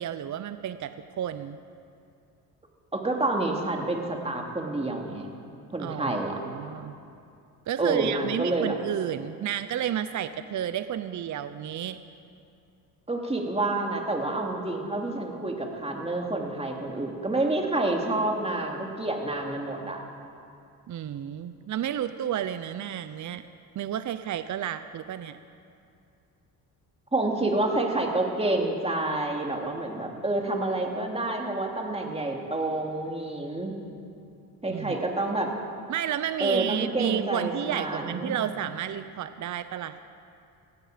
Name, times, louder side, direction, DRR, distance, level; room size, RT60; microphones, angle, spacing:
voice 1, 0.0-1.6 5.8-6.2 6.4-7.0 7.7-12.0 20.9-23.4 23.8-25.4 34.7-35.0 35.9-40.0, right 10 dB, 50° right, 12 dB, 0.7 m, -31 dB
voice 2, 2.9-5.3 5.7-6.3 7.8-8.8 13.1-20.0 27.1-33.7 34.6-35.5 36.4-38.4, right 2 dB, 15° right, 1 dB, 2.8 m, -28 dB
18.5 x 15.5 x 5.1 m, 2.6 s
supercardioid pair, 75°, 39 cm